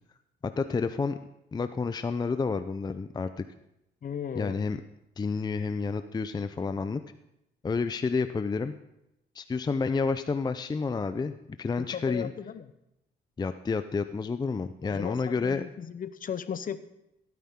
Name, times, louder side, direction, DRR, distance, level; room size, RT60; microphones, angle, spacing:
voice 1, 0.4-1.2 1.5-3.4 4.4-4.8 5.2-7.0 7.6-8.7 9.4-12.3 13.4-15.6, left 4 dB, 20° left, 10 dB, 0.5 m, -30 dB
voice 2, 4.0-4.6 11.8-12.7 14.8-16.8, left 8 dB, 45° left, 13 dB, 0.8 m, -36 dB
16.0 x 9.4 x 3.7 m, 0.85 s
cardioid pair, 90°, 20 cm